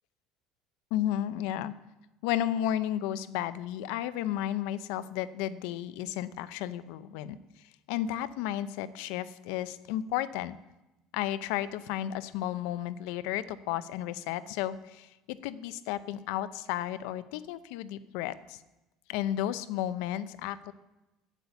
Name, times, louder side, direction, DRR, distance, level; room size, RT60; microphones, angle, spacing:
voice 1, 0.9-1.7 2.2-7.4 7.9-10.6 11.1-18.6 19.1-20.7, left 12 dB, 80° left, 15 dB, 0.6 m, -33 dB
8.4 x 8.1 x 6.9 m, 0.99 s
cardioid pair, 130°, 0 cm